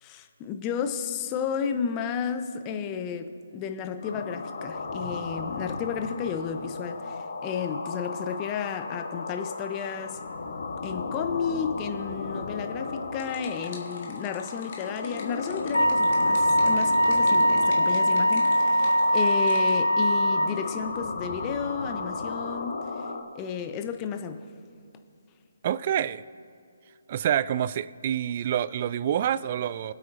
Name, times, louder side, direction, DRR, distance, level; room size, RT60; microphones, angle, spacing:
voice 1, 0.0-10.2 10.8-22.9 23.3-24.4, left 7 dB, 20° left, 7 dB, 0.8 m, -32 dB
sound 1, 4.0-23.2, left 4 dB, 60° left, 1.4 m, -35 dB
sound 2, 13.1-19.7, left 5 dB, 45° left, 2.0 m, -48 dB
Wind instrument woodwind instrument, 15.7-20.6, equal, 85° left, 0.9 m, -22 dB
voice 2, 25.6-26.2 27.1-29.9, right 10 dB, 40° right, 18 dB, 0.3 m, -27 dB
24.5 x 8.4 x 2.6 m, 2.4 s
figure-of-eight pair, 145°, 0 cm